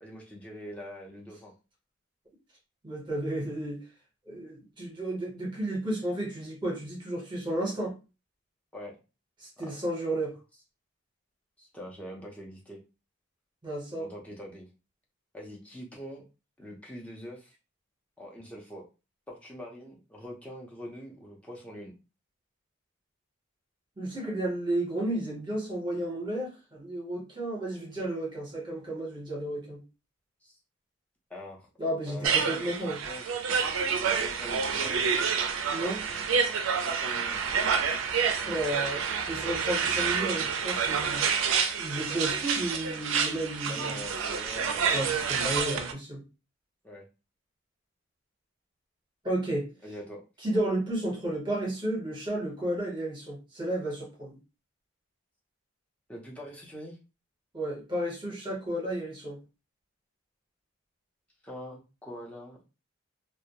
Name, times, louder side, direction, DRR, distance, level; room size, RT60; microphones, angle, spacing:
voice 1, 0.0-1.5 8.7-9.0 9.7-9.8 11.6-12.8 14.0-14.7 15.3-16.2 16.6-17.6 18.2-18.9 19.3-21.9 30.4-30.6 31.3-31.7 32.0-33.3 33.9-35.4 36.8-37.4 43.7-45.0 46.8-47.0 49.8-50.2 56.1-57.0 61.4-62.6, equal, 5° left, -2 dB, 0.5 m, -44 dB
voice 2, 2.8-3.8 4.3-7.9 9.4-10.3 13.6-14.1 24.0-29.8 31.8-33.0 35.7-36.0 38.4-41.3 41.8-44.0 44.9-46.2 49.2-49.7 50.4-54.4 57.5-59.4, right 1 dB, 20° right, -3 dB, 0.8 m, -32 dB
sound 1, 32.2-45.9, right 6 dB, 75° right, 0.3 m, -28 dB
2.2 x 2.0 x 2.8 m, 0.30 s
head